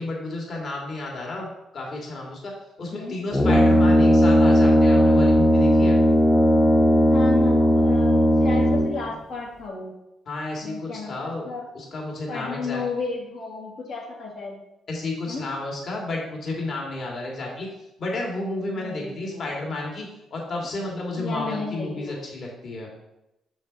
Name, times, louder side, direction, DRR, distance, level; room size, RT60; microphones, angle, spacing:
voice 1, 0.0-2.5 2.8-6.0 10.3-11.5 11.7-12.8 14.9-17.7 18.0-22.9, left 2 dB, 55° left, -1 dB, 2.1 m, -31 dB
Brass instrument, 3.3-9.1, equal, 15° left, 0.7 m, -17 dB
voice 2, 7.1-9.9 10.6-11.7 12.3-14.5 15.3-15.4 18.7-19.4 21.2-22.2, left 4 dB, 75° left, -4 dB, 2.0 m, -33 dB
6.3 x 6.2 x 4.0 m, 0.89 s
cardioid pair, 90°, 0 cm